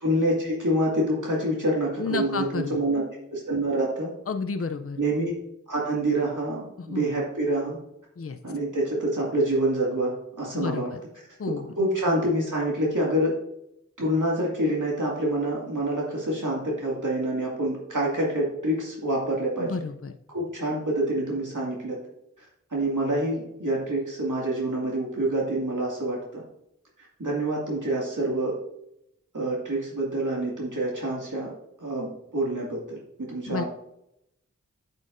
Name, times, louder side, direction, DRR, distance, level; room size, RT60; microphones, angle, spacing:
voice 1, 0.0-3.0 3.3-4.1 5.0-5.3 5.7-7.8 8.4-10.9 11.8-13.3 14.0-19.7 20.3-22.0 22.4-22.5 22.7-26.4 27.2-28.6 29.3-31.5 31.8-33.7, right 1 dB, 75° right, -4 dB, 2.3 m, -27 dB
voice 2, 2.0-2.8 4.3-5.0 6.8-7.1 8.2-8.4 10.5-11.0 11.4-11.7 19.6-20.1 33.5-33.6, left 4 dB, 45° left, 7 dB, 0.6 m, -31 dB
9.0 x 8.2 x 2.6 m, 0.80 s
wide cardioid pair, 40°, 31 cm